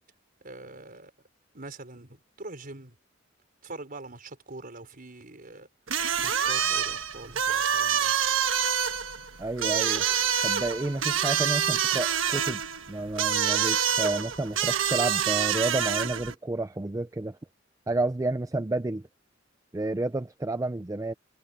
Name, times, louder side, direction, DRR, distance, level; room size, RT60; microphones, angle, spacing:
voice 1, 0.4-1.1 1.5-2.9 3.6-5.7 6.2-8.2, right 2 dB, 45° right, 4.6 m, -43 dB
sound 1, 5.9-16.3, right 8 dB, 80° right, 1.3 m, -27 dB
voice 2, 9.4-10.0 10.4-12.6 12.9-17.4 17.9-19.1 19.7-21.1, right 2 dB, 15° right, 0.5 m, -30 dB
head